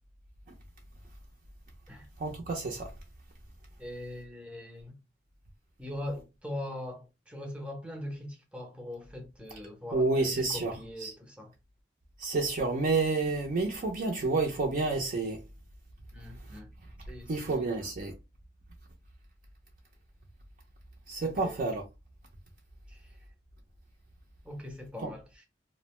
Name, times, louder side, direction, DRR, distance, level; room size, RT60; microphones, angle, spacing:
voice 1, 2.2-2.9 9.9-10.7 11.0-11.1 12.2-15.4 17.3-18.1 21.1-21.8 25.0-25.1, right 3 dB, 50° right, 0.5 m, -29 dB
voice 2, 3.8-5.0 5.8-11.5 16.1-16.7 17.1-17.7 21.2-21.6 22.9-23.1 24.4-25.4, left 1 dB, 5° right, 0.6 m, -41 dB
2.5 x 2.1 x 3.0 m
head